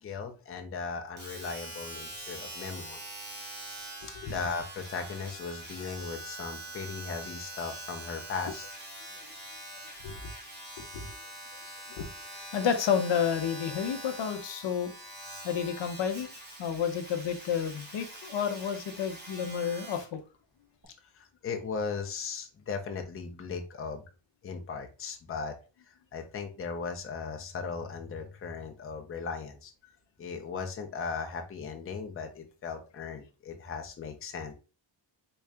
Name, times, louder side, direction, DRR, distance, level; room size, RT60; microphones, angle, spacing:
voice 1, 0.0-3.0 4.3-8.7 21.1-24.0 24.4-25.6 25.9-29.7 30.2-34.5, left 5 dB, 30° left, 5 dB, 0.6 m, -37 dB
Domestic sounds home sounds, 1.2-20.2 20.8-20.9, right 1 dB, 20° right, 1.2 m, -44 dB
voice 2, 10.8-11.1 11.6-12.1 12.5-14.9 15.4-16.3 16.6-20.2, left 7 dB, 65° left, 7 dB, 0.7 m, -31 dB
3.7 x 2.3 x 3.3 m, 0.32 s
cardioid pair, 95°, 46 cm